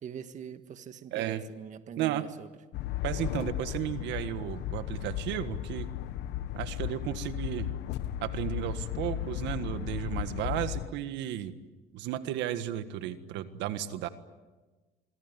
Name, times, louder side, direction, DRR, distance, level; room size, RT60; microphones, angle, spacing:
voice 1, 0.0-2.5, right 8 dB, 40° right, 10 dB, 1.6 m, -43 dB
voice 2, 1.1-1.4 2.0-2.2 3.0-5.9 6.5-7.7 8.2-11.5 11.9-14.1, right 12 dB, 70° right, 11 dB, 1.6 m, -34 dB
sound 1, 2.7-10.9, left 13 dB, 65° left, 1.4 m, -35 dB
26.5 x 24.0 x 9.3 m, 1.2 s
cardioid pair, 120°, 19 cm